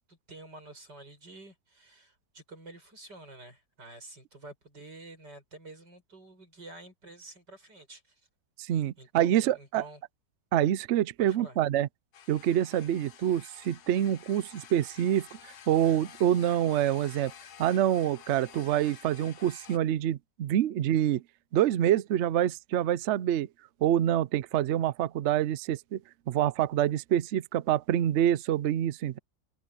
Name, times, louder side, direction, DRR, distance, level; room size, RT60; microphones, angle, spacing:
voice 1, 0.1-8.1 9.0-10.0 11.2-11.6, right 2 dB, 70° right, 8.5 m, -49 dB
voice 2, 8.6-9.8 10.5-11.9 12.3-17.3 17.6-21.2 21.5-23.5 23.8-26.0 26.3-29.2, right 11 dB, 85° right, 0.6 m, -26 dB
sound 1, 12.1-19.8, left 8 dB, 65° left, 1.5 m, -51 dB
omnidirectional pair, 1.9 m